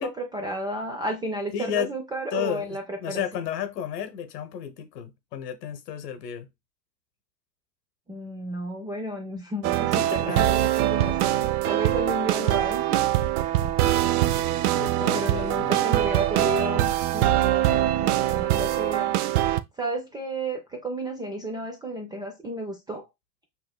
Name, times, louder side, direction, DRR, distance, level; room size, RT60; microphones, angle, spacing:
voice 1, 0.0-3.2 8.1-13.1 15.1-19.2 19.8-23.1, right 1 dB, 10° right, 0.3 m, -32 dB
voice 2, 1.5-1.9 2.3-6.5 10.0-10.5 14.7-15.9, left 9 dB, 75° left, 1.0 m, -33 dB
sound 1, 9.6-19.6, right 14 dB, 65° right, 0.6 m, -23 dB
5.5 x 2.5 x 2.2 m
hypercardioid pair, 95°, 49 cm